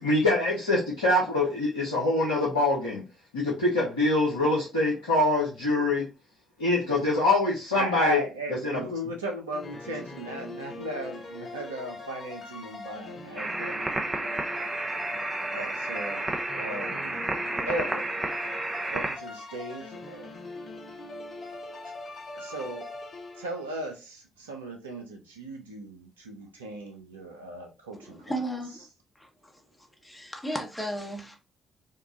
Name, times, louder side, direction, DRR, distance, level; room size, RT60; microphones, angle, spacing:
voice 1, 0.0-3.0 3.3-6.0 6.6-8.2 8.5-9.1, left 2 dB, 85° left, 0.7 m, -24 dB
voice 2, 7.7-13.8 15.5-17.2 17.6-18.1 18.9-20.4 22.3-22.9 23.4-28.2, right 1 dB, 85° right, 0.5 m, -36 dB
sound 1, 9.5-23.8, left 2 dB, 50° left, 0.7 m, -41 dB
sound 2, 13.4-19.2, right 2 dB, 25° right, 0.7 m, -31 dB
voice 3, 27.9-28.8 29.2-29.5 30.0-31.4, right 1 dB, 10° left, 1.0 m, -35 dB
3.6 x 2.3 x 2.5 m
figure-of-eight pair, 45°, 0 cm